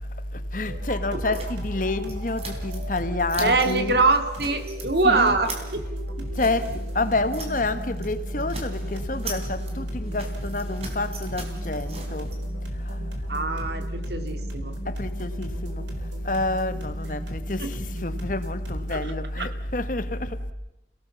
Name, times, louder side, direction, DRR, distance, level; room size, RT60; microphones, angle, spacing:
voice 1, 0.5-4.1 5.0-5.4 6.4-6.7 6.9-12.3 14.9-15.8 16.2-20.3, left 2 dB, 45° left, 1.2 m, -27 dB
sound 1, 0.7-19.1, right 1 dB, 85° right, 4.1 m, -41 dB
sound 2, 1.3-3.0 3.3-3.8 4.1-4.9 5.2-7.7 8.0-8.1 8.4-12.4, right 3 dB, 35° right, 3.8 m, -40 dB
voice 2, 3.4-5.8 6.2-6.3 13.3-14.7 17.6-17.7 18.9-19.0 19.4-19.5, right 3 dB, 65° right, 2.2 m, -24 dB
29.5 x 18.0 x 7.0 m
head